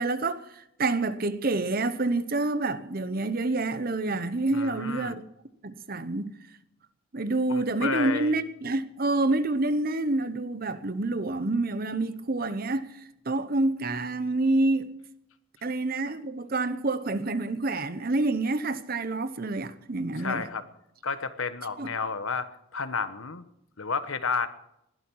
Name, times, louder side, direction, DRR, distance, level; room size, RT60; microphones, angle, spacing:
voice 1, 0.0-5.2 5.6-6.3 7.1-13.0 13.3-14.9 15.6-20.5 21.8-21.9, right 2 dB, 45° right, 0.9 m, -28 dB
voice 2, 4.5-5.1 7.5-8.4 20.2-20.6 21.0-23.4 23.8-24.5, left 5 dB, 80° left, 1.2 m, -31 dB
20.5 x 12.0 x 4.7 m
head